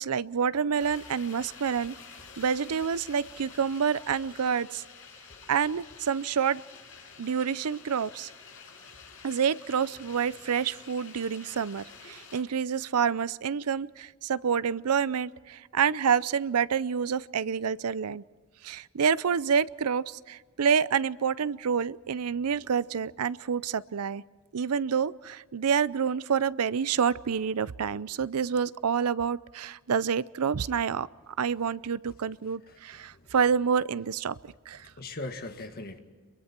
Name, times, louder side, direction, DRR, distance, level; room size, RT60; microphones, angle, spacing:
voice 1, 0.0-2.0 2.4-4.8 5.5-6.6 7.2-8.3 9.2-18.2 18.6-24.2 24.5-34.4 34.7-34.9, right 7 dB, 85° right, 18 dB, 0.5 m, -28 dB
sound 1, 0.8-12.4, left 5 dB, 60° left, 6.0 m, -49 dB
voice 2, 33.0-33.3 34.8-36.0, left 2 dB, 45° left, 6 dB, 1.9 m, -40 dB
28.0 x 23.0 x 4.5 m, 1.5 s
head